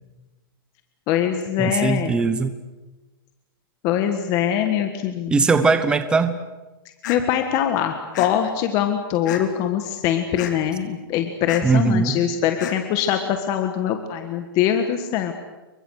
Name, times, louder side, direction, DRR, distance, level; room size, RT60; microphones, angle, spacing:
voice 1, 1.1-2.2 3.8-5.5 7.1-15.3, left 10 dB, 30° left, 6 dB, 1.6 m, -23 dB
voice 2, 1.6-2.5 5.3-6.4 11.6-12.2, right 4 dB, 5° right, 10 dB, 1.0 m, -20 dB
sound 1, 7.0-7.2 8.1-8.3 9.3-9.6 10.4-10.5 11.5-11.6 12.6-12.7, left 11 dB, 50° left, 3.1 m, -31 dB
29.0 x 23.5 x 6.5 m, 1.1 s
hypercardioid pair, 165°, 12 cm